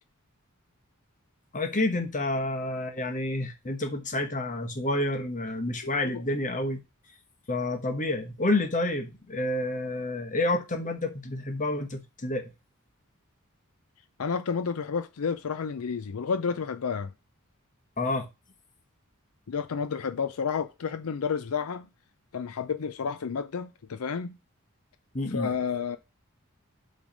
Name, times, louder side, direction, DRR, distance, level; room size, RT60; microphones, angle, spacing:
voice 1, 1.5-6.8 7.5-12.4 18.0-18.3 25.1-25.5, left 2 dB, 35° left, 1.2 m, -29 dB
voice 2, 5.8-6.2 14.2-17.1 19.5-21.9 22.3-24.4 25.3-26.0, left 6 dB, 80° left, 0.5 m, -31 dB
7.2 x 3.4 x 5.2 m
head